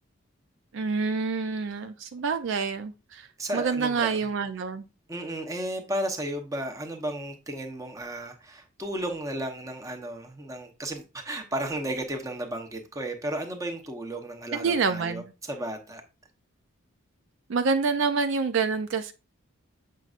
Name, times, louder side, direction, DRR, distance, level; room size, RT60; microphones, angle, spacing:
voice 1, 0.7-3.3 3.5-4.8 14.5-15.3 17.5-19.1, right 4 dB, 60° right, 8 dB, 0.4 m, -27 dB
voice 2, 3.4-4.2 5.1-16.0, right 1 dB, 15° right, 4 dB, 0.9 m, -34 dB
7.5 x 5.2 x 2.5 m, 0.30 s
head